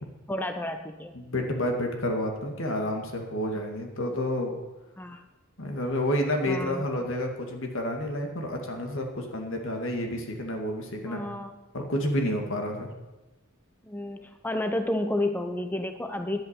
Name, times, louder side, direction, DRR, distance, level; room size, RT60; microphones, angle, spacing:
voice 1, 0.3-1.1 5.0-5.2 6.5-6.9 11.1-11.6 13.8-16.4, left 1 dB, 10° left, 6 dB, 0.6 m, -31 dB
voice 2, 1.1-4.6 5.6-11.2 11.7-12.9, left 1 dB, 65° left, 3 dB, 2.2 m, -29 dB
10.5 x 8.5 x 8.3 m, 1.1 s
head